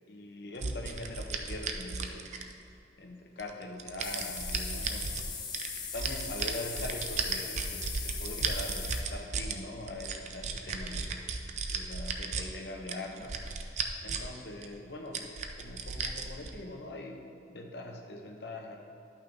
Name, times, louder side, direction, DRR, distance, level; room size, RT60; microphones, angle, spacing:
voice 1, 0.1-2.3 3.0-5.2 5.9-11.3 11.7-13.4 14.0-15.3 15.6-18.8, left 2 dB, 70° left, 2 dB, 0.9 m, -42 dB
sound 1, 0.6-2.7 3.4-5.2 5.5-9.5 9.9-12.4 12.9-14.4 14.6-14.7 15.1-16.5, right 5 dB, 40° right, 0.5 m, -35 dB
sound 2, 4.0-9.0, left 6 dB, 25° left, 0.5 m, -40 dB
12.0 x 5.8 x 3.4 m, 2.5 s
head